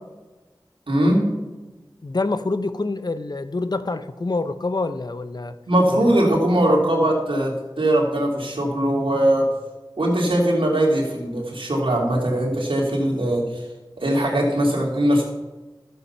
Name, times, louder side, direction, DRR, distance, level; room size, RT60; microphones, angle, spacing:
voice 1, 0.9-1.3 5.7-9.5 10.0-13.4 14.0-15.2, right 1 dB, 90° right, -2 dB, 2.8 m, -20 dB
voice 2, 2.0-5.6 5.9-6.1, left 3 dB, 50° left, 11 dB, 0.7 m, -26 dB
13.0 x 7.9 x 5.6 m, 1.2 s
wide cardioid pair, 60°, 9 cm